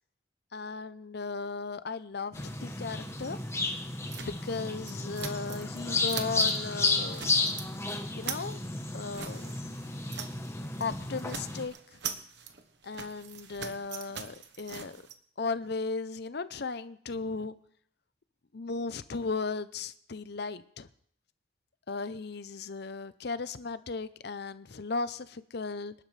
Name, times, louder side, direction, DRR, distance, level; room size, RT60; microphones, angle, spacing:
voice 1, 0.5-3.4 4.2-7.3 8.1-8.6 8.9-9.5 10.8-11.7 12.8-15.0 15.4-17.6 18.5-20.9 21.9-25.9, left 4 dB, 55° left, 14 dB, 0.6 m, -36 dB
sound 1, 2.3-11.6, left 3 dB, 15° left, 1.1 m, -32 dB
sound 2, 4.1-5.8 6.0-6.6 6.9-7.7 8.0-10.5 10.7-10.9 11.2-15.1, right 7 dB, 60° right, 1.2 m, -42 dB
26.0 x 11.5 x 3.3 m, 0.65 s
head